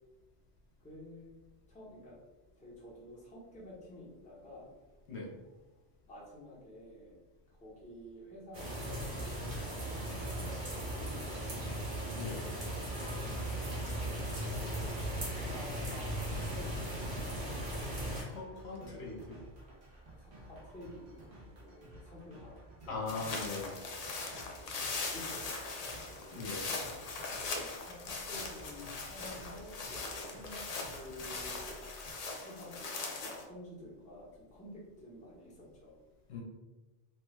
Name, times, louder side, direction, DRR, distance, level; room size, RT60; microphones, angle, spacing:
voice 1, 0.8-1.4 1.7-2.2 2.5-4.7 6.1-7.2 7.5-9.2 9.4-12.7 15.1-17.3 18.7-19.0 20.2-21.2 21.5-23.6 24.5-26.5 27.4-31.7 32.4-36.0, left 1 dB, 5° left, -6 dB, 0.7 m, -51 dB
sound 1, 8.5-18.2, right 1 dB, 50° right, 1.1 m, -37 dB
sound 2, 12.3-32.1, right 1 dB, 85° right, 1.2 m, -54 dB
voice 2, 18.2-19.4 22.9-23.8 26.3-26.7 36.3-36.4, left 3 dB, 65° left, -2 dB, 0.9 m, -40 dB
sound 3, 23.1-33.4, left 3 dB, 90° left, 0.3 m, -40 dB
3.2 x 2.2 x 3.1 m, 1.1 s
omnidirectional pair, 1.2 m